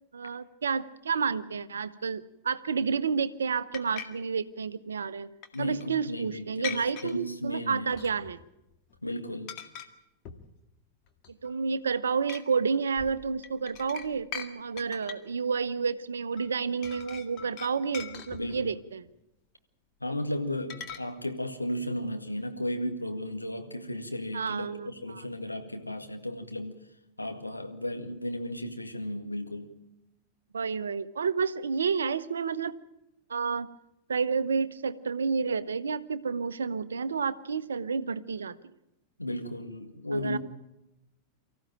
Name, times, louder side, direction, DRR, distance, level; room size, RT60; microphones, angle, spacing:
voice 1, 0.1-5.3 5.6-8.4 11.4-19.0 24.3-25.2 30.5-32.8 33.3-33.7 34.1-38.7 40.1-40.4, right 5 dB, 70° right, 14 dB, 0.9 m, -30 dB
sound 1, 3.7-4.1 5.4-5.9 6.6-7.1 7.9-8.4 8.7-9.0 9.5-9.9 10.2-10.5 11.1-11.6 12.3-12.4 13.0-14.5 14.8-15.3 16.4-16.5 16.8-18.7 20.7-21.0, left 8 dB, 40° left, 1.9 m, -41 dB
voice 2, 5.5-7.9 9.0-9.5 18.4-18.8 20.0-26.8 27.2-29.7 39.2-40.4, left 1 dB, 85° left, 5 dB, 1.9 m, -34 dB
24.5 x 15.0 x 9.0 m, 0.93 s
figure-of-eight pair, 90°, 0 cm